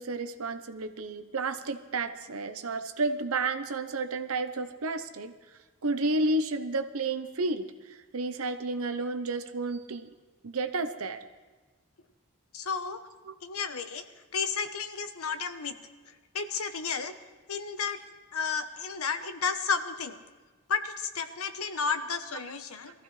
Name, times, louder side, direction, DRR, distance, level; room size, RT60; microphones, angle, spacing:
voice 1, 0.0-5.3 5.8-10.1 10.4-11.2 13.3-13.4, right 3 dB, 75° right, 9 dB, 0.9 m, -31 dB
voice 2, 12.5-13.0 13.4-14.0 14.3-15.8 16.3-17.1 17.5-18.0 18.3-20.2 20.7-22.9, left 5 dB, 80° left, 8 dB, 1.0 m, -32 dB
22.0 x 14.5 x 3.3 m, 1.3 s
head